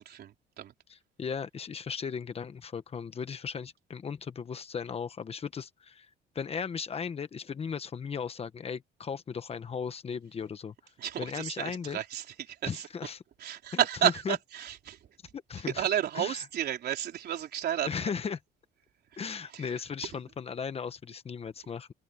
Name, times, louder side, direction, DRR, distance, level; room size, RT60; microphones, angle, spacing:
voice 1, 0.0-0.7 11.0-12.9 13.4-15.0 15.7-18.1 19.1-19.2 19.5-19.8, right 10 dB, 60° right, 3.9 m, -32 dB
voice 2, 0.9-6.1 6.3-10.7 11.2-12.0 12.6-13.2 13.7-14.4 15.3-15.8 16.1-16.4 17.8-18.4 19.2-21.9, left 6 dB, 35° left, 1.2 m, -36 dB
cardioid pair, 135°, 19 cm